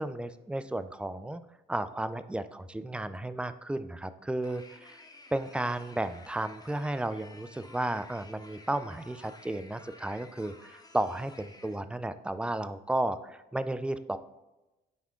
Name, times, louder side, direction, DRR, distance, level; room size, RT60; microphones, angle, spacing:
voice 1, 0.0-1.4 1.7-5.0 5.3-14.2, right 1 dB, 5° right, 12 dB, 0.4 m, -33 dB
sound 1, 4.4-11.8, left 2 dB, 20° left, 1.0 m, -53 dB
9.4 x 3.6 x 3.7 m, 1.0 s
cardioid pair, 90°, 20 cm